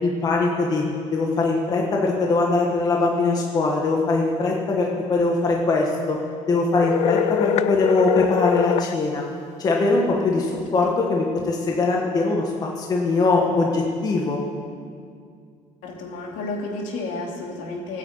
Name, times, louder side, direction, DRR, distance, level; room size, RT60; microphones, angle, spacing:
voice 1, 0.0-0.8 1.1-6.2 6.5-9.2 9.6-14.4, left 3 dB, 30° left, -1 dB, 1.6 m, -21 dB
sound 1, 6.8-8.9, left 13 dB, 55° left, 0.4 m, -23 dB
voice 2, 15.8-18.0, left 2 dB, 70° left, -1 dB, 2.9 m, -31 dB
16.0 x 9.5 x 8.2 m, 2.2 s
cardioid pair, 165°, 13 cm